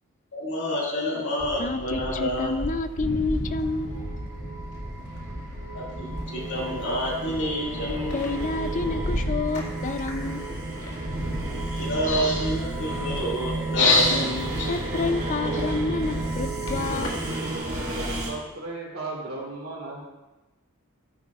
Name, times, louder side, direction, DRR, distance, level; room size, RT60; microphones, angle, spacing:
voice 1, 0.3-2.6 5.7-8.2 11.7-14.7 15.3-15.4, left 1 dB, 55° left, -4 dB, 2.3 m, -27 dB
sound 1, 1.4-17.3, equal, 75° left, 1.8 m, -35 dB
voice 2, 1.6-4.0 8.1-10.6 14.7-17.2, left 3 dB, 35° left, 11 dB, 0.4 m, -29 dB
sound 2, 3.3-17.6, right 3 dB, 15° right, 2.9 m, -34 dB
sound 3, 8.1-18.3, right 1 dB, 45° right, 3.2 m, -35 dB
voice 3, 18.2-20.1, right 3 dB, 70° right, -3 dB, 3.1 m, -35 dB
13.5 x 9.8 x 2.4 m, 1.1 s
head